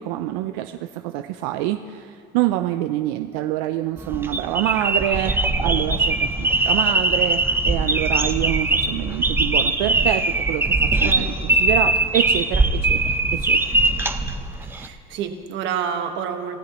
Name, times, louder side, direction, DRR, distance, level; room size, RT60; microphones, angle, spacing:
voice 1, 0.0-13.0 13.3-13.6, right 14 dB, 85° right, 8 dB, 0.5 m, -26 dB
sound 1, 4.0-14.9, right 2 dB, 10° right, 0.8 m, -21 dB
voice 2, 11.0-11.6 14.7-16.6, right 7 dB, 65° right, 6 dB, 1.4 m, -29 dB
25.0 x 13.5 x 3.0 m, 2.3 s
supercardioid pair, 105°, 20 cm